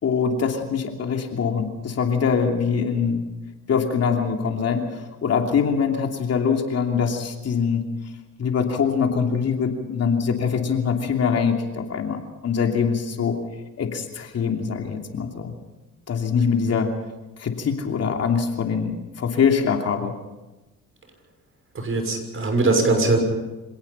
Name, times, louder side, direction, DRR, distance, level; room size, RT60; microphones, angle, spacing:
voice 1, 0.0-3.3 3.7-7.9 8.4-13.4 13.8-15.5 16.1-16.9 17.4-20.1, left 6 dB, 55° left, 3 dB, 3.0 m, -23 dB
voice 2, 21.7-23.2, right 3 dB, 45° right, 4 dB, 6.4 m, -21 dB
26.5 x 18.0 x 5.7 m, 1.1 s
cardioid pair, 90°, 30 cm